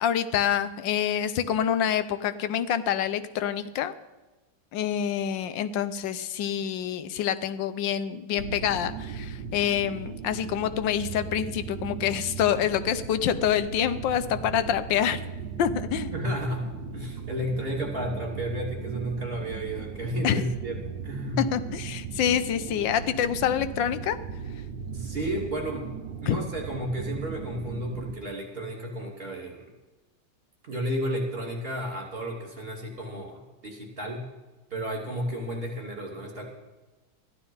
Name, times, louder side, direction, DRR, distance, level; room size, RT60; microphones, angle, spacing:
voice 1, 0.0-3.9 4.7-15.2 15.6-16.1 20.2-20.4 21.4-24.2 26.3-26.4, left 9 dB, 90° left, 13 dB, 1.5 m, -26 dB
sound 1, 8.4-28.2, right 6 dB, 80° right, 1.5 m, -37 dB
voice 2, 16.1-21.5 24.9-25.9 26.2-29.7 30.6-34.3 34.7-36.5, equal, 30° right, 0 dB, 3.2 m, -32 dB
14.0 x 11.5 x 5.5 m, 1.2 s
omnidirectional pair, 1.9 m